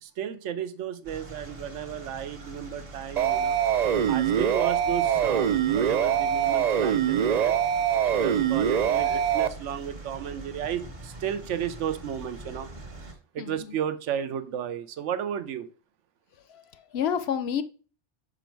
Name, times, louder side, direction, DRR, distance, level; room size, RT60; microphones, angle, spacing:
voice 1, 0.0-3.6 4.1-7.5 8.1-12.7 13.3-15.7, right 9 dB, 85° right, 1.0 m, -33 dB
sound 1, 1.0-13.1, right 2 dB, 40° right, 1.3 m, -43 dB
sound 2, 3.2-9.5, right 9 dB, 60° right, 0.4 m, -24 dB
voice 2, 13.4-13.8 16.5-17.6, left 8 dB, 65° left, 0.8 m, -30 dB
6.2 x 5.1 x 4.5 m
omnidirectional pair, 1.2 m